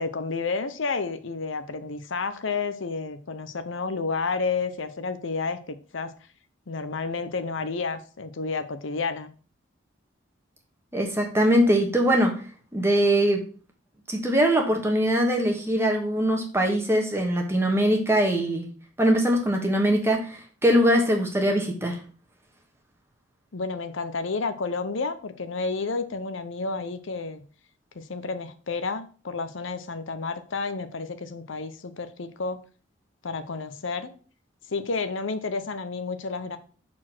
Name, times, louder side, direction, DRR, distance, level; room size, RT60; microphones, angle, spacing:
voice 1, 0.0-6.1 6.7-9.3 23.5-27.4 27.9-32.6 33.2-34.1 34.7-36.6, left 4 dB, 75° left, 10 dB, 0.7 m, -30 dB
voice 2, 10.9-12.4 12.7-13.4 14.1-18.7 19.0-22.0, equal, 10° right, 2 dB, 1.3 m, -22 dB
6.2 x 4.4 x 6.0 m, 0.40 s
head